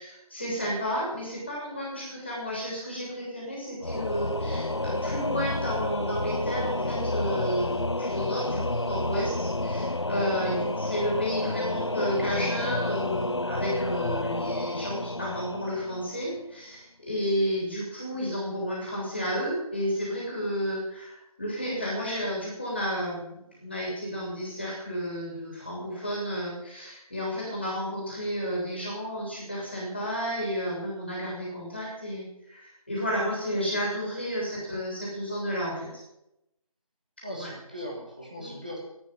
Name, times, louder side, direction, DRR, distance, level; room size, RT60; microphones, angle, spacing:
voice 1, 0.0-35.9 37.3-37.5 38.4-38.6, equal, 20° left, -4 dB, 3.0 m, -32 dB
Singing / Musical instrument, 3.8-16.4, left 2 dB, 50° left, 0.4 m, -30 dB
voice 2, 37.2-38.8, equal, 15° right, -2 dB, 1.4 m, -39 dB
11.5 x 8.7 x 9.1 m, 0.86 s
figure-of-eight pair, 180°, 19 cm